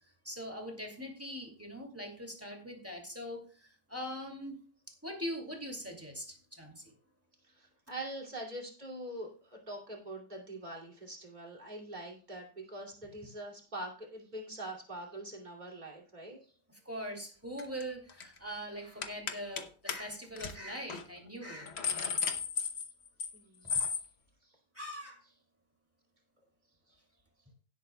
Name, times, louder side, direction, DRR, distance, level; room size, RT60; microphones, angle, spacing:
voice 1, 0.2-4.6 4.9-6.9 16.7-22.2 24.7-25.2, equal, 10° right, 1 dB, 2.3 m, -42 dB
voice 2, 7.4-16.4 23.3-23.8 24.4-24.5, right 1 dB, 25° right, -1 dB, 2.8 m, -44 dB
sound 1, 17.6-17.8 18.1-18.4 19.0-19.6 19.9-20.0 20.4-20.5 20.9-21.0 21.4-23.4 23.7-24.0, left 6 dB, 45° left, 1.1 m, -34 dB
17.0 x 8.4 x 2.3 m, 0.40 s
omnidirectional pair, 1.8 m